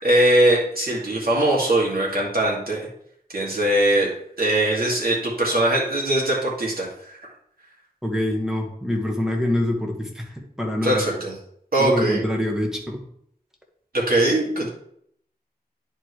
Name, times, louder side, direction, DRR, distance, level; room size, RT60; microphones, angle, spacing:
voice 1, 0.0-2.9 3.3-4.1 4.4-7.2 10.8-11.3 11.7-12.2 13.9-14.7, right 1 dB, 70° right, -4 dB, 2.5 m, -21 dB
voice 2, 8.0-11.0 11.8-13.0, left 1 dB, 5° right, 0 dB, 1.6 m, -25 dB
10.5 x 4.5 x 3.3 m, 0.67 s
wide cardioid pair, 60°, 16 cm